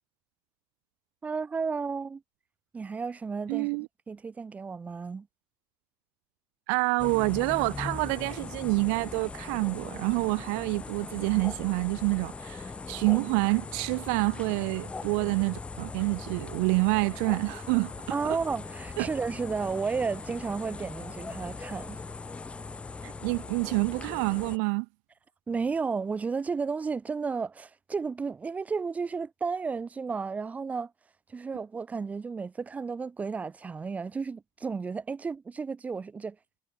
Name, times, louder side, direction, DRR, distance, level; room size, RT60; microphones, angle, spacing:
voice 1, 1.2-2.2 2.7-3.7 4.1-5.3 18.1-22.0 25.5-30.9 31.3-36.4, right 5 dB, 15° right, 5.2 m, -33 dB
voice 2, 3.5-3.9 6.7-17.9 19.0-19.1 23.0-24.9, right 40 dB or more, 80° right, 1.8 m, -27 dB
sound 1, 7.0-24.6, left 4 dB, 10° left, 1.8 m, -40 dB
cardioid pair, 175°, 9 cm